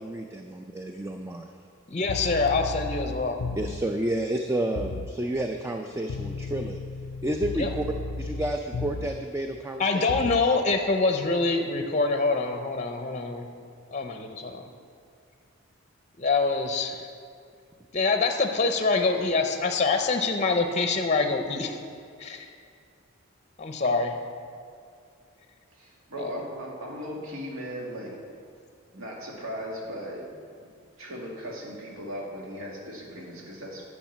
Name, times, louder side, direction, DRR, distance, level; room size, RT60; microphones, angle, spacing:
voice 1, 0.0-1.5 3.5-6.8 7.2-7.8 8.2-10.1, right 1 dB, 15° right, 4 dB, 0.3 m, -30 dB
voice 2, 1.9-3.4 7.6-7.7 9.8-13.5 13.9-14.6 16.2-17.1 17.9-21.8 22.2-22.5 23.6-24.2, left 3 dB, 35° left, 5 dB, 0.6 m, -25 dB
sound 1, 2.0-3.9 4.8-5.2 6.1-9.3 10.1-10.5, left 3 dB, 75° left, 0.5 m, -34 dB
voice 3, 25.7-28.1 28.9-30.2 30.6-30.7 31.0-33.8, equal, 80° right, -2 dB, 2.3 m, -37 dB
10.5 x 6.4 x 7.3 m, 2.3 s
head